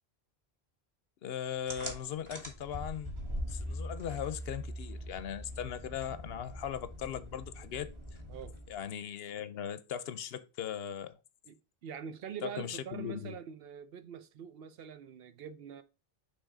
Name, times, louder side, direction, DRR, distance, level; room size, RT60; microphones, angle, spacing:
voice 1, 1.2-3.1 3.5-7.9 8.7-11.1 12.4-13.3, left 9 dB, 70° left, 0.8 m, -39 dB
sound 1, 1.7-8.8, equal, 30° right, 1.3 m, -42 dB
voice 2, 11.5-15.8, right 8 dB, 65° right, 0.8 m, -44 dB
6.4 x 3.3 x 4.9 m
omnidirectional pair, 1.1 m